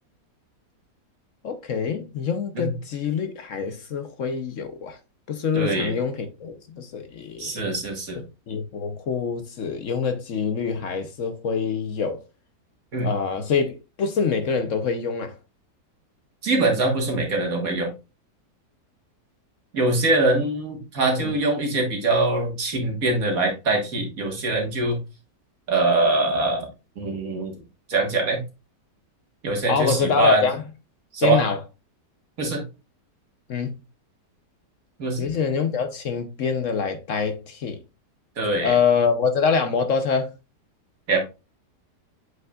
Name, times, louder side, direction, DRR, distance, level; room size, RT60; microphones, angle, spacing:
voice 1, 1.4-5.0 5.3-7.5 8.5-12.2 13.0-15.3 21.2-21.3 29.7-30.6 31.2-31.6 33.5-33.7 35.2-37.8 38.6-40.3, left 6 dB, 55° left, 1.0 m, -25 dB
voice 2, 5.5-5.9 7.4-8.2 12.9-13.1 16.4-17.9 19.7-25.0 25.7-26.7 27.0-27.6 27.9-28.4 29.4-30.4 31.1-31.4 32.4-32.6 35.0-35.3 38.4-38.7 41.1-41.2, right 2 dB, 55° right, 1.9 m, -23 dB
7.8 x 5.3 x 2.4 m
omnidirectional pair, 1.8 m